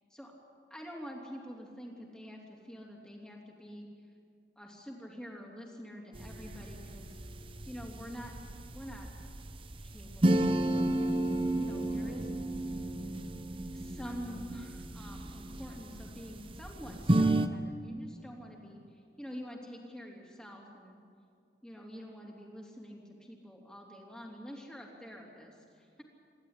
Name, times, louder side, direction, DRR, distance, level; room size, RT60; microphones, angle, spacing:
voice 1, 0.7-3.9 4.6-7.2 7.7-8.3 8.7-9.1 9.8-12.3 13.7-21.0 21.6-26.0, equal, 5° left, -1 dB, 3.1 m, -47 dB
sound 1, 6.1-17.5, right 1 dB, 30° right, 0.8 m, -32 dB
27.0 x 12.0 x 9.8 m, 2.3 s
head